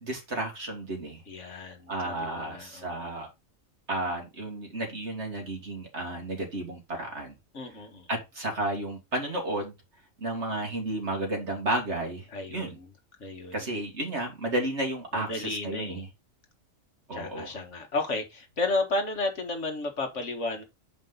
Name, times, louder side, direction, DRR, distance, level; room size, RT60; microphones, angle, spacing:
voice 1, 0.0-1.2 1.9-3.3 3.9-7.4 8.1-9.7 10.2-12.8 13.5-16.1 17.1-17.5, right 1 dB, 60° right, 2.5 m, -32 dB
voice 2, 1.3-3.1 7.5-8.1 12.3-12.9 13.2-13.6 15.1-16.1 17.1-20.6, left 2 dB, 65° left, 1.8 m, -33 dB
7.5 x 5.2 x 3.8 m
omnidirectional pair, 1.4 m